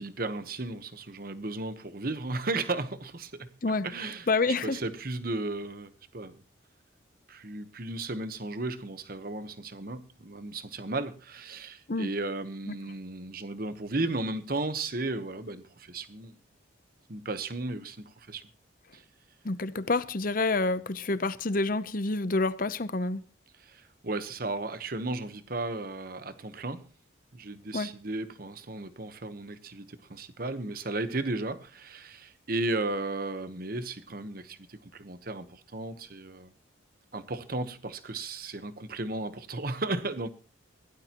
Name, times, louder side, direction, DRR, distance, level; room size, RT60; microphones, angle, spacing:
voice 1, 0.0-3.5 3.8-4.3 4.6-6.4 7.3-16.3 17.1-18.4 18.9-19.0 23.6-26.8 27.3-36.5 37.1-40.3, right 2 dB, 45° right, 1.1 m, -35 dB
voice 2, 4.3-4.8 11.9-12.1 19.4-23.2 27.7-27.9, left 3 dB, 45° left, 0.7 m, -28 dB
21.5 x 16.5 x 3.0 m
head